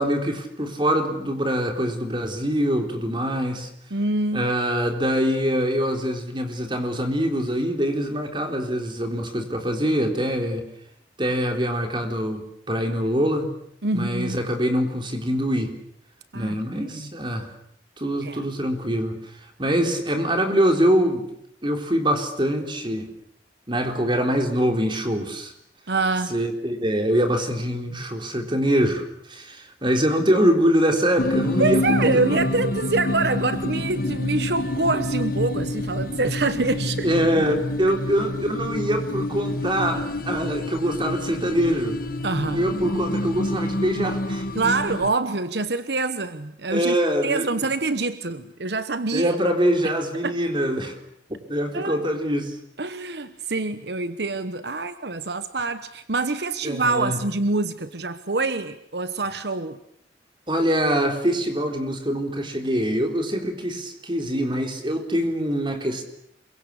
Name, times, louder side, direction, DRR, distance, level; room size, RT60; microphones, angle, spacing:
voice 1, 0.0-3.7 4.3-10.6 11.2-13.5 13.9-15.7 16.3-17.5 18.0-19.1 19.6-21.2 21.6-23.1 23.7-25.5 26.3-29.0 29.3-32.4 37.0-42.0 42.5-44.5 46.7-47.5 49.1-51.0 51.5-52.6 56.6-57.2 60.5-66.0, equal, 25° right, 5 dB, 3.9 m, -24 dB
voice 2, 3.9-4.5 13.8-14.4 16.3-17.1 18.2-18.5 25.9-26.3 31.6-37.1 42.2-42.6 44.5-46.9 47.2-49.4 50.2-50.3 51.7-52.0 52.8-59.8, right 3 dB, 65° right, 12 dB, 1.1 m, -25 dB
sound 1, 31.2-45.1, left 1 dB, 50° left, 1.3 m, -27 dB
27.5 x 23.5 x 8.5 m, 0.71 s
head